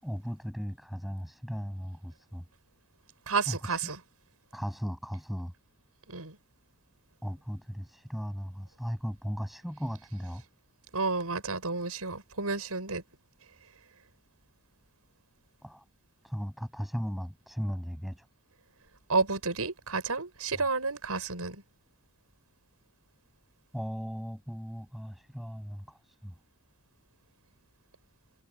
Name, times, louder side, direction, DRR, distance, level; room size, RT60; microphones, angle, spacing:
voice 1, 0.0-2.4 3.5-3.8 4.5-5.5 7.2-10.4 15.6-15.8 16.2-18.3 23.7-26.3, equal, ahead, 8.0 m, -37 dB
voice 2, 3.3-4.0 6.1-6.4 10.9-13.0 19.1-21.6, right 4 dB, 90° right, 5.9 m, -31 dB
head